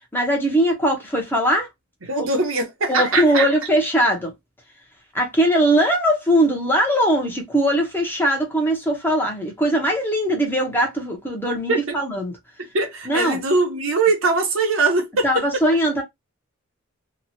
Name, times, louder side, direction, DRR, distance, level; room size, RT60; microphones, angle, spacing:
voice 1, 0.1-1.7 2.2-2.3 2.9-4.3 5.1-12.3 13.1-13.4 15.2-16.0, equal, 10° left, 0.8 m, -20 dB
voice 2, 2.1-3.4 11.7-12.0 12.7-15.3, right 3 dB, 65° right, 1.0 m, -21 dB
3.0 x 2.4 x 2.7 m
head